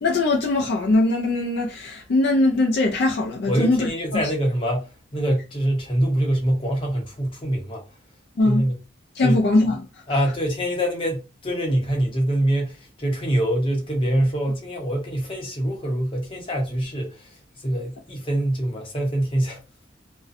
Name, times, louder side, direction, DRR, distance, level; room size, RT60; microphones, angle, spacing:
voice 1, 0.0-4.3 8.4-8.7 9.2-9.9, left 2 dB, 55° left, 0.3 m, -21 dB
voice 2, 3.5-7.8 8.4-8.8 9.2-9.4 10.1-19.6, right 1 dB, 25° left, 0.7 m, -24 dB
2.5 x 2.1 x 2.4 m
head